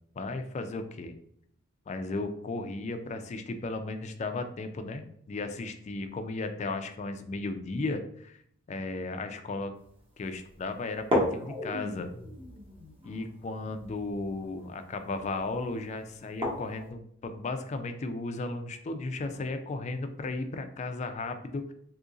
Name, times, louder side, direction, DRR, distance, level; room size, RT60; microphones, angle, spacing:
voice 1, 0.2-1.1 1.9-8.4 8.7-9.7 10.2-12.1 13.0-21.7, left 3 dB, 35° left, 8 dB, 0.3 m, -35 dB
sound 1, 9.8-9.9 10.3-10.4 11.0-16.9, left 1 dB, 25° right, 0.9 m, -35 dB
2.8 x 2.6 x 3.7 m, 0.65 s
head